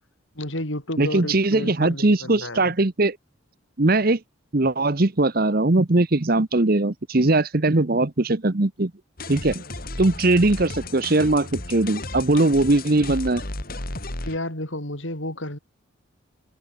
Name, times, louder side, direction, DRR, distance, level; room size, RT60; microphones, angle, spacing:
voice 1, 0.3-2.7 14.2-15.6, left 1 dB, 65° left, 5.9 m, -31 dB
voice 2, 1.0-3.2 3.8-4.2 4.5-8.9 9.3-9.6 10.0-13.4, right 2 dB, 45° right, 1.0 m, -20 dB
sound 1, 9.2-14.4, left 2 dB, 45° left, 3.1 m, -34 dB
head